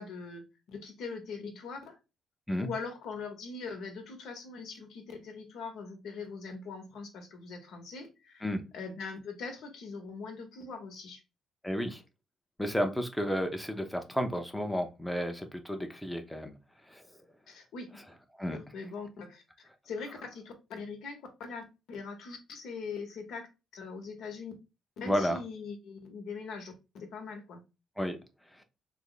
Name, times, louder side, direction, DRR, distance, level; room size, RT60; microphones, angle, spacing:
voice 1, 0.0-2.0 2.6-11.2 17.5-18.0 18.5-19.4 19.8-23.5 23.7-24.5 25.0-27.6, left 4 dB, 75° left, 5 dB, 0.9 m, -42 dB
voice 2, 11.6-12.0 12.6-16.5 16.9-17.2 18.4-18.6 25.0-25.4 28.0-28.2 28.5-28.6, equal, 5° left, 5 dB, 0.6 m, -32 dB
3.2 x 2.1 x 3.7 m, 0.27 s
cardioid pair, 90°, 0 cm